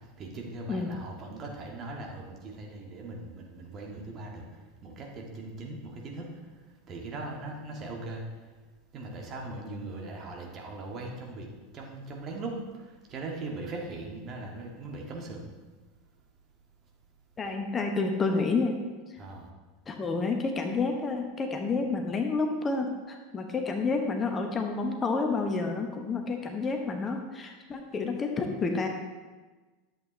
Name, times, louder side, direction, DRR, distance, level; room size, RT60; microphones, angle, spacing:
voice 1, 0.0-4.5 4.8-6.3 6.9-8.2 8.9-15.5 19.2-19.5, right 2 dB, 35° right, 0 dB, 1.7 m, -40 dB
voice 2, 17.4-18.8 19.1-19.2 19.9-28.9, left 4 dB, 25° left, 4 dB, 0.9 m, -29 dB
11.0 x 7.7 x 3.1 m, 1.3 s
figure-of-eight pair, 80°, 0 cm